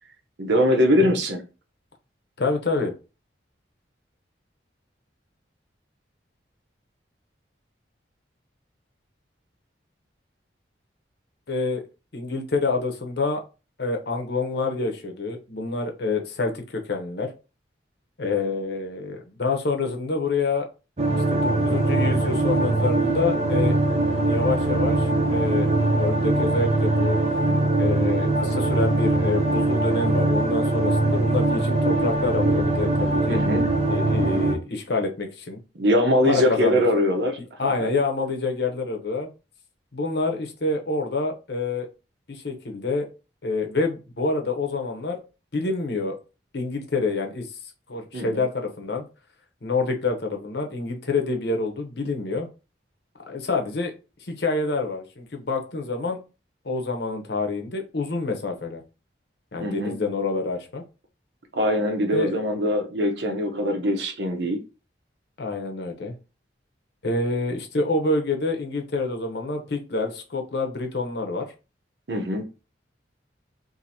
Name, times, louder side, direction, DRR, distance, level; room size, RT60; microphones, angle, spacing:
voice 1, 0.4-1.4 33.3-33.6 35.7-37.9 48.1-48.4 59.6-60.0 61.5-64.6 72.1-72.4, left 1 dB, 70° right, 0.8 m, -22 dB
voice 2, 2.4-2.9 11.5-11.8 12.1-13.4 13.8-17.3 18.2-20.7 21.3-23.7 24.3-25.7 26.0-27.2 27.8-33.4 33.9-35.6 36.3-36.8 37.6-39.3 39.9-41.9 42.3-43.1 43.4-45.2 45.5-46.1 46.5-47.5 47.9-49.0 49.6-52.5 53.3-53.9 54.2-56.2 56.6-58.8 59.5-60.8 62.1-62.3 65.4-66.1 67.0-71.4, left 3 dB, 60° left, 0.8 m, -27 dB
sound 1, 21.0-34.6, right 2 dB, 35° right, 0.7 m, -22 dB
2.7 x 2.7 x 4.2 m
head